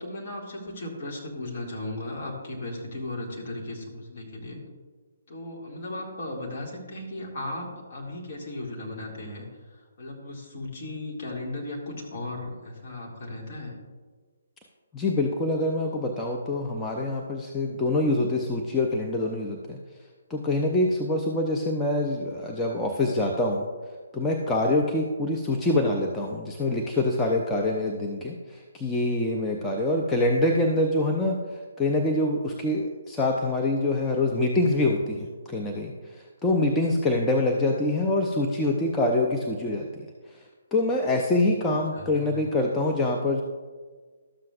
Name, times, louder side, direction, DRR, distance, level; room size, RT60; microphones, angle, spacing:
voice 1, 0.0-4.6 5.3-13.8 41.9-42.5, left 1 dB, 45° left, -2 dB, 2.1 m, -36 dB
voice 2, 14.9-19.8 20.3-23.7 24.1-31.4 31.8-40.1 40.3-40.4 40.7-43.4, left 2 dB, 10° left, -1 dB, 0.6 m, -25 dB
12.5 x 7.5 x 2.5 m, 1.4 s
figure-of-eight pair, 135°, 0 cm